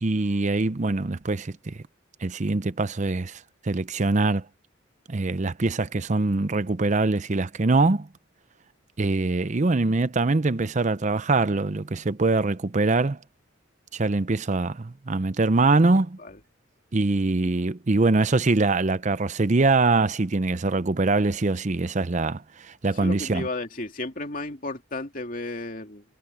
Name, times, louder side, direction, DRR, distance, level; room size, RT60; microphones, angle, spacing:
voice 1, 0.0-1.8 2.2-3.4 3.6-4.4 5.1-8.1 9.0-13.2 13.9-16.2 16.9-23.5, right 3 dB, 35° right, 0.6 m, -23 dB
voice 2, 22.9-26.0, left 2 dB, 40° left, 2.8 m, -33 dB
head